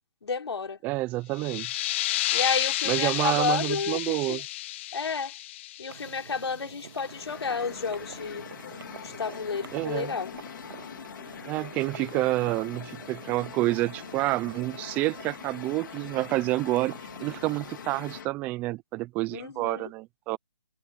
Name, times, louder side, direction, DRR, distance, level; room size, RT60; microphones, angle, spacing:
voice 1, 0.2-0.8 2.3-4.4 4.9-5.3 5.8-8.4 9.2-10.3 19.3-19.9, left 5 dB, 70° left, 4.0 m, -31 dB
voice 2, 0.8-1.8 2.9-4.5 9.7-10.1 11.5-20.4, right 19 dB, 10° right, 0.5 m, -29 dB
sound 1, 1.3-6.7, left 16 dB, 25° left, 1.5 m, -31 dB
sound 2, 5.9-18.2, right 7 dB, 55° right, 7.8 m, -47 dB
sound 3, 6.8-18.3, left 9 dB, 45° left, 3.2 m, -43 dB
hypercardioid pair, 155°, 14 cm